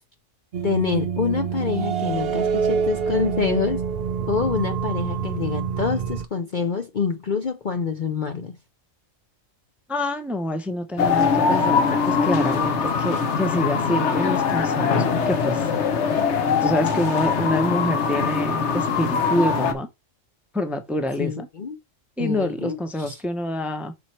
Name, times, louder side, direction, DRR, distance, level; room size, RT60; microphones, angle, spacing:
sound 1, 0.5-6.3, right 6 dB, 60° right, 0.8 m, -26 dB
voice 1, 0.6-3.8 4.3-8.6 21.2-21.8 22.2-23.2, left 5 dB, 45° left, 0.7 m, -26 dB
voice 2, 9.9-15.7 16.6-19.9 20.5-21.5 22.2-23.9, left 1 dB, ahead, 0.7 m, -26 dB
sound 2, 11.0-19.7, left 5 dB, 65° left, 1.2 m, -22 dB
6.2 x 4.4 x 4.4 m
omnidirectional pair, 1.3 m